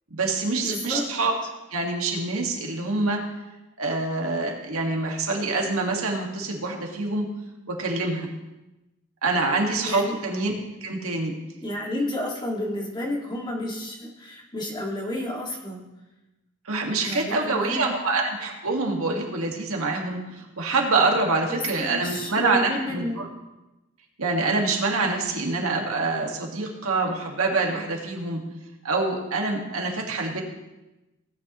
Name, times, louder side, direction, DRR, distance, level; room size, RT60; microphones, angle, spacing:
voice 1, 0.1-1.4 1.7-3.2 3.8-7.3 7.7-8.3 9.2-10.5 10.8-11.3 16.7-23.3 24.2-28.4 28.8-30.4, right 3 dB, 75° right, 1 dB, 1.9 m, -26 dB
voice 2, 0.6-1.0 9.9-10.2 11.6-15.9 17.0-17.9 21.5-23.2, left 1 dB, 20° left, -2 dB, 2.1 m, -31 dB
17.0 x 9.5 x 3.1 m, 1.0 s
head